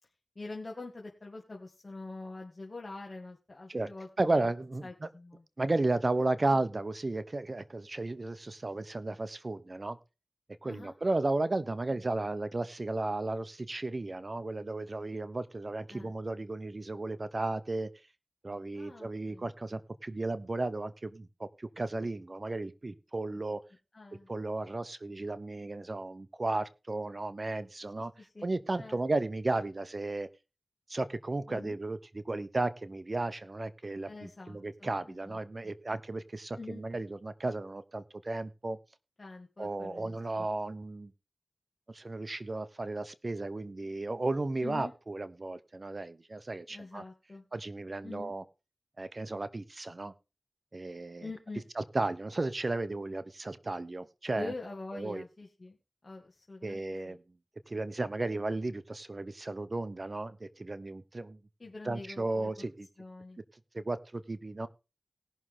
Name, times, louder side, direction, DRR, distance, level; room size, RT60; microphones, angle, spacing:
voice 1, 0.4-4.5 4.8-5.4 6.5-6.6 10.6-10.9 11.9-12.0 15.9-16.1 18.7-19.5 23.3-23.4 23.9-24.3 28.0-28.4 28.8-29.0 31.5-31.8 34.1-35.4 36.6-36.8 39.2-40.5 44.6-44.9 46.7-47.4 48.0-48.3 51.2-51.6 54.3-55.8 56.0-56.8 57.1-57.2 61.6-62.7 63.0-63.4, left 3 dB, 45° left, 0 dB, 2.3 m, -45 dB
voice 2, 4.2-5.1 5.6-10.0 10.6-17.9 18.4-23.6 24.3-28.1 28.4-30.3 30.9-38.8 39.6-41.1 41.9-47.0 47.5-48.4 49.0-50.1 50.7-51.3 51.8-54.5 54.9-55.2 56.6-57.2 57.7-61.4 61.8-62.9 63.7-64.7, right 2 dB, 45° right, 13 dB, 1.1 m, -34 dB
18.5 x 6.4 x 3.7 m, 0.29 s
cardioid pair, 45°, 0 cm